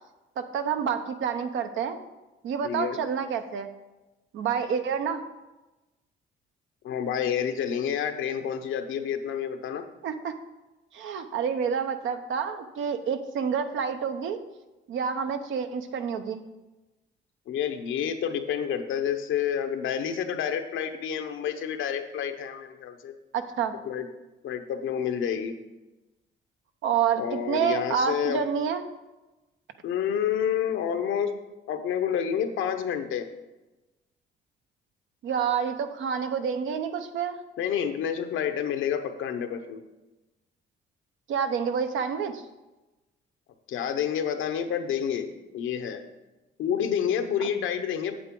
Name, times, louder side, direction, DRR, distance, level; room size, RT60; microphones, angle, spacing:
voice 1, 0.4-2.0 2.4-3.7 4.3-5.2 10.0-10.3 10.9-14.4 14.9-16.4 23.3-23.7 26.8-28.8 35.2-37.4 41.3-42.4, right 7 dB, 80° right, 8 dB, 0.8 m, -28 dB
voice 2, 2.6-3.0 6.8-9.8 17.5-23.1 23.8-24.1 24.4-25.5 27.2-28.4 29.8-31.3 31.7-33.3 37.6-39.8 43.7-45.3 45.5-46.0 46.6-48.2, left 8 dB, 80° left, 7 dB, 0.9 m, -29 dB
8.7 x 7.8 x 3.8 m, 1.1 s
cardioid pair, 90°, 20 cm